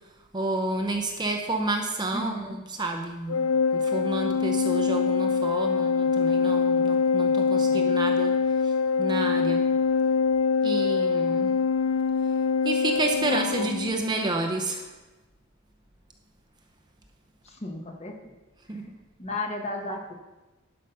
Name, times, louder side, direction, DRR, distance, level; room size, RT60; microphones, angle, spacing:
voice 1, 0.3-8.4 8.6-9.7 10.6-11.6 12.6-14.9 18.7-19.0, right 2 dB, 20° right, 3 dB, 0.7 m, -30 dB
voice 2, 2.1-2.6 7.7-7.9 13.2-13.7 17.4-18.3 19.2-20.1, left 2 dB, 30° left, 3 dB, 1.1 m, -35 dB
Organ, 3.3-14.0, left 5 dB, 75° left, 0.4 m, -24 dB
11.0 x 5.7 x 5.5 m, 1.1 s
head